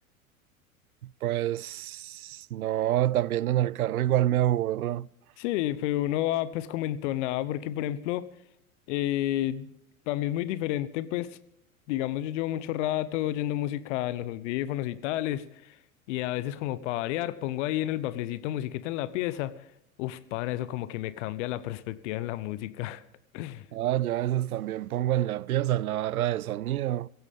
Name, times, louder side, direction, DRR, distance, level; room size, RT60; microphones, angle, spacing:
voice 1, 1.0-5.1 23.7-27.1, right 13 dB, 85° right, 0.5 m, -27 dB
voice 2, 5.4-8.2 8.9-9.7 10.1-11.3 11.9-15.7 16.1-19.5 20.0-23.0 23.3-23.6, left 14 dB, 55° left, 1.0 m, -30 dB
17.0 x 15.5 x 3.6 m
hypercardioid pair, 90°, 42 cm